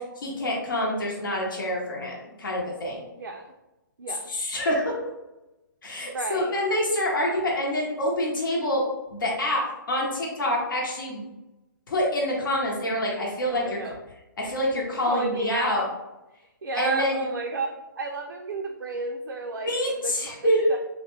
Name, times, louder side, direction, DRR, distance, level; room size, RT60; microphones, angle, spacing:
voice 1, 0.0-3.0 4.1-4.8 5.8-8.8 9.1-11.3 11.9-13.8 14.4-15.8 16.8-17.2 19.6-20.8, left 1 dB, 70° left, -2 dB, 0.8 m, -26 dB
voice 2, 4.0-4.3 6.0-6.5 13.5-14.0 15.1-15.8 16.6-17.7 18.0-20.4 20.7-20.8, right 3 dB, 85° right, 2 dB, 0.4 m, -32 dB
2.7 x 2.1 x 3.1 m, 0.98 s
hypercardioid pair, 135°, 11 cm